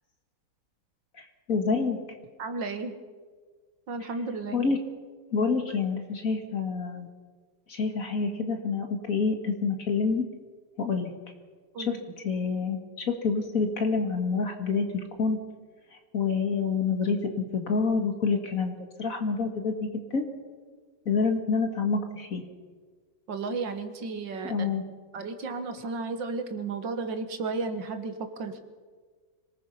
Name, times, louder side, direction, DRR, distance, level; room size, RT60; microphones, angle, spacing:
voice 1, 1.2-2.0 4.5-4.8 5.3-7.1 7.7-10.2 10.8-11.1 11.9-12.0 12.2-15.4 16.1-20.2 21.1-22.4 24.5-24.8, left 4 dB, 50° left, 5 dB, 2.3 m, -27 dB
voice 2, 2.4-3.0 3.9-4.7 5.4-5.5 11.7-12.0 23.3-24.8 25.1-28.6, right 3 dB, 85° right, 8 dB, 2.3 m, -33 dB
25.5 x 19.0 x 5.7 m, 1.5 s
omnidirectional pair, 1.9 m